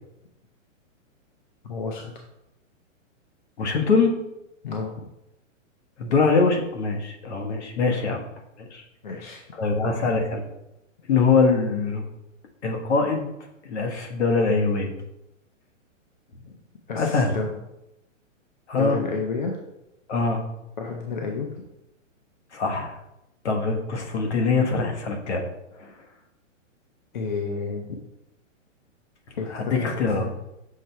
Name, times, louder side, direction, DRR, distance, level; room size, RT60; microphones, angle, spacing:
voice 1, 1.6-2.2 4.6-4.9 9.0-9.4 16.9-17.5 18.7-19.6 20.8-21.5 27.1-28.0 29.4-29.5 29.8-30.3, left 4 dB, 40° left, 2 dB, 0.5 m, -30 dB
voice 2, 3.6-4.1 6.0-8.2 8.6-8.8 9.5-10.4 11.1-12.0 12.6-13.3 13.6-14.9 16.9-17.3 18.7-19.0 20.1-20.4 22.5-22.9 23.4-25.4 25.8-25.9 29.5-30.3, left 4 dB, 55° left, 3 dB, 1.3 m, -23 dB
6.4 x 3.3 x 4.4 m, 0.88 s
hypercardioid pair, 175°, 39 cm